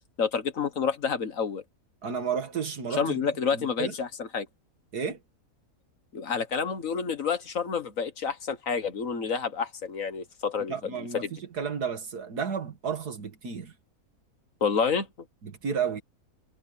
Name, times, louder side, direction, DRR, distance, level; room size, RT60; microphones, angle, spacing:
voice 1, 0.2-1.6 3.0-4.5 6.1-11.3 14.6-15.1, left 6 dB, 60° left, 1.8 m, -29 dB
voice 2, 2.0-3.2 3.5-3.9 4.9-5.2 10.7-11.3 11.5-13.7 15.4-16.0, right 6 dB, 85° right, 2.5 m, -32 dB
omnidirectional pair, 1.6 m